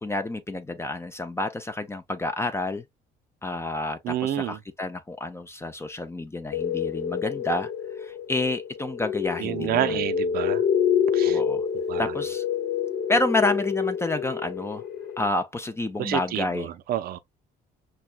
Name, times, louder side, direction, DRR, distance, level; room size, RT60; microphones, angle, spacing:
voice 1, 0.0-2.8 3.4-7.7 8.0-10.0 11.2-11.6 12.0-12.4 13.1-14.8 15.2-16.7, left 2 dB, 15° left, 0.5 m, -29 dB
voice 2, 4.0-4.6 9.4-10.6 11.1-11.4 11.9-12.1 16.0-17.2, right 11 dB, 65° right, 0.5 m, -29 dB
sound 1, 6.5-15.3, left 7 dB, 75° left, 1.1 m, -27 dB
5.9 x 2.2 x 2.3 m
cardioid pair, 95°, 17 cm